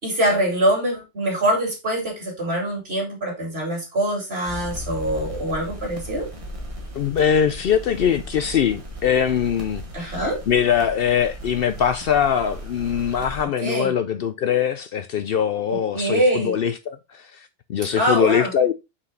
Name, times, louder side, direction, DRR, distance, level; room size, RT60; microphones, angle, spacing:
voice 1, 0.0-6.3 9.9-10.4 13.6-13.9 15.9-16.5 18.0-18.5, right 1 dB, 55° right, 3.1 m, -23 dB
sound 1, 4.5-13.4, equal, 30° right, 1.5 m, -36 dB
voice 2, 6.9-18.7, left 8 dB, 65° left, 0.7 m, -22 dB
5.8 x 4.8 x 3.9 m
omnidirectional pair, 1.2 m